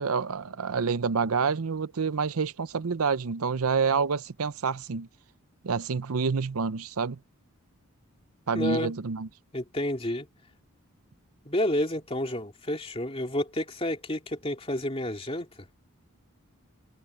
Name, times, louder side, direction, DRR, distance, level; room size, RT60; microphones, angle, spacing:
voice 1, 0.0-5.1 5.6-7.2 8.5-9.3, right 5 dB, 85° right, 0.7 m, -28 dB
voice 2, 8.5-8.9 9.5-10.3 11.4-15.5, left 1 dB, 25° left, 2.7 m, -30 dB
head